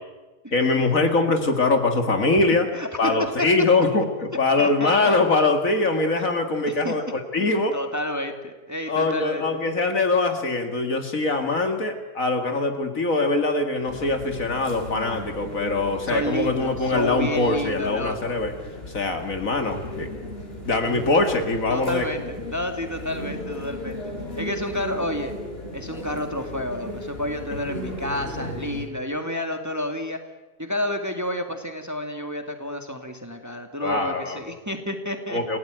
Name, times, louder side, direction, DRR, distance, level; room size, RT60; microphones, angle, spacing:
voice 1, 0.5-2.7 3.0-7.8 8.9-18.5 18.9-20.1 20.7-22.0 33.8-34.4 35.3-35.6, left 3 dB, 55° left, 5 dB, 2.5 m, -23 dB
voice 2, 2.7-3.1 4.6-5.1 6.7-6.9 7.7-9.4 16.1-18.4 21.7-24.0 24.4-25.3 25.7-30.2 30.6-35.4, left 1 dB, 10° right, 5 dB, 2.1 m, -30 dB
sound 1, 13.9-28.9, left 1 dB, 35° left, 5.0 m, -36 dB
29.0 x 17.0 x 9.2 m, 1.2 s
omnidirectional pair, 1.8 m